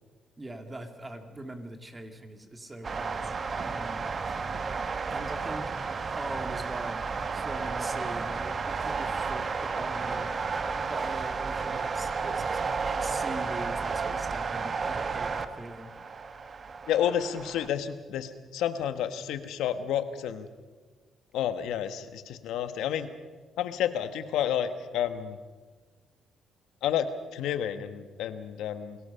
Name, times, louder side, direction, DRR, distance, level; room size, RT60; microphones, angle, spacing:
voice 1, 0.4-4.1 5.0-5.7 6.2-7.0 7.3-10.3 10.6-12.6 13.0-15.9, right 1 dB, 20° right, 6 dB, 2.5 m, -41 dB
sound 1, 2.8-17.7, right 5 dB, 40° right, 1.2 m, -32 dB
voice 2, 16.9-20.5 21.3-23.1 23.6-25.4 26.8-29.0, left 9 dB, 85° left, 10 dB, 1.3 m, -30 dB
27.0 x 17.5 x 5.7 m, 1.4 s
cardioid pair, 90°, 0 cm